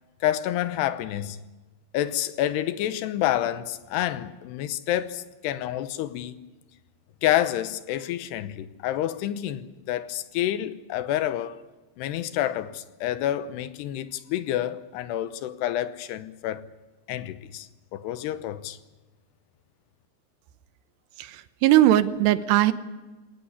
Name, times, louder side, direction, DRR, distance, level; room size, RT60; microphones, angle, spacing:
voice 1, 0.2-1.4 1.9-6.4 7.2-11.6 12.0-16.7 17.1-18.8, left 12 dB, 85° left, 3.0 m, -28 dB
voice 2, 21.2-22.7, right 13 dB, 90° right, 3.1 m, -20 dB
21.0 x 18.0 x 9.7 m
omnidirectional pair, 4.7 m